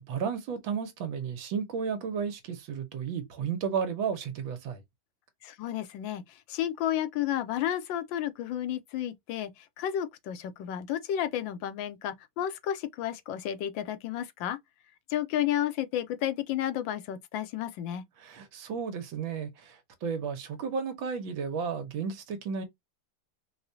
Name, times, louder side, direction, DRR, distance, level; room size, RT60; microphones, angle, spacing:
voice 1, 0.0-4.8 18.2-22.6, right 6 dB, 70° right, 1.6 m, -33 dB
voice 2, 5.4-14.6 15.1-18.0, left 11 dB, 75° left, 1.3 m, -32 dB
4.8 x 2.2 x 2.7 m
omnidirectional pair, 2.3 m